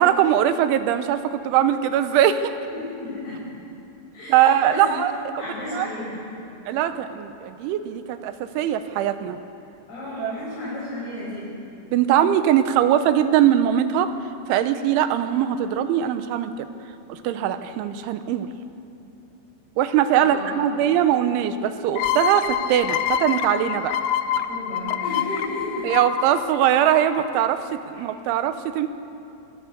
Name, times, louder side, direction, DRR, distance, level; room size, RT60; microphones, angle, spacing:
voice 1, 0.0-2.5 4.3-5.1 5.7-5.9 6.7-9.4 10.2-10.3 11.9-14.1 14.5-16.7 17.1-18.5 19.8-23.9 25.8-27.6 27.9-28.9, right 10 dB, 90° right, 10 dB, 3.3 m, -21 dB
voice 2, 2.7-3.5 4.1-5.0 5.4-6.2 9.9-11.6 20.1-20.6 24.5-25.9, left 1 dB, 35° left, -9 dB, 7.6 m, -33 dB
sound 1, 22.0-27.4, left 10 dB, 80° left, 2.3 m, -27 dB
28.0 x 18.5 x 6.7 m, 2.7 s
omnidirectional pair, 5.4 m